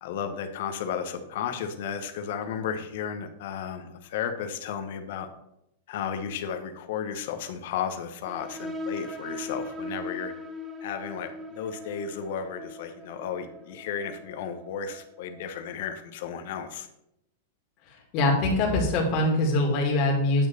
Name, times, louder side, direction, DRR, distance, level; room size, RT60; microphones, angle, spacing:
voice 1, 0.0-5.3 5.9-10.3 10.8-16.9, left 7 dB, 60° left, 7 dB, 0.9 m, -34 dB
sound 1, 8.3-15.6, left 1 dB, 10° right, 0.7 m, -39 dB
voice 2, 17.9-20.5, left 2 dB, 40° left, -1 dB, 2.2 m, -23 dB
8.8 x 3.1 x 6.5 m, 0.81 s
supercardioid pair, 145°, 0 cm